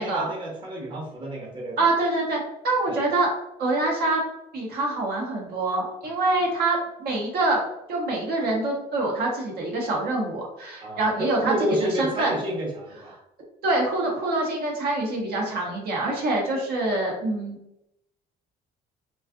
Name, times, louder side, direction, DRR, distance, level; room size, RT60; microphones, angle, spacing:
voice 1, 0.0-1.8 2.9-3.0 10.8-13.1, right 1 dB, 30° right, -2 dB, 0.8 m, -30 dB
voice 2, 1.8-3.3 3.6-4.2 4.5-7.6 7.9-11.5 11.8-12.3 13.6-17.6, right 2 dB, 65° right, -1 dB, 0.8 m, -25 dB
2.5 x 2.3 x 2.4 m, 0.82 s
cardioid pair, 110°, 17 cm